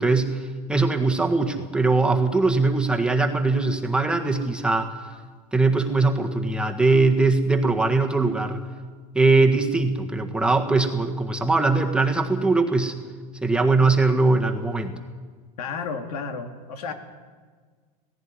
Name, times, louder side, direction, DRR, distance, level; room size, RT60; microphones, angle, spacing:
voice 1, 0.0-4.9 5.5-8.6 9.1-12.9 13.4-14.9, right 3 dB, 5° right, 3 dB, 1.5 m, -21 dB
voice 2, 15.6-16.9, left 5 dB, 85° left, 6 dB, 2.5 m, -32 dB
17.0 x 15.5 x 9.7 m, 1.5 s
supercardioid pair, 125°, 19 cm